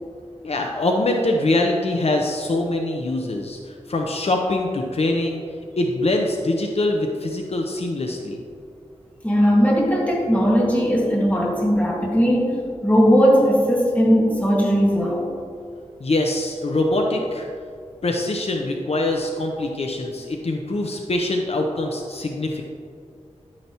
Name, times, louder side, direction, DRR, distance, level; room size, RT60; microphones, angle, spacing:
voice 1, 0.4-5.4 5.8-8.4 16.0-17.5 18.0-22.6, left 2 dB, 60° left, 2 dB, 0.8 m, -23 dB
voice 2, 9.2-15.3, equal, 10° left, -3 dB, 1.8 m, -18 dB
11.0 x 8.7 x 3.0 m, 2.3 s
wide cardioid pair, 90°, 12 cm